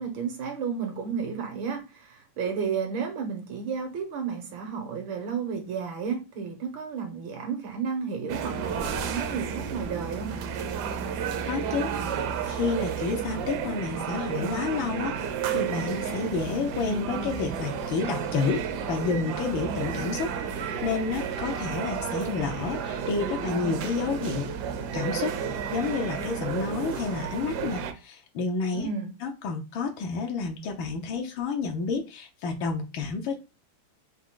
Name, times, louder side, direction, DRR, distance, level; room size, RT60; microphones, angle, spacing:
voice 1, 0.0-10.5 28.7-29.1, right 6 dB, 85° right, 1.9 m, -32 dB
sound 1, 8.3-27.9, right 7 dB, 70° right, 1.1 m, -32 dB
voice 2, 11.5-15.1 15.5-18.6 18.9-24.5 24.9-25.4 25.7-28.9 29.2-33.4, left 4 dB, 85° left, 1.5 m, -30 dB
4.8 x 2.4 x 3.6 m
omnidirectional pair, 2.1 m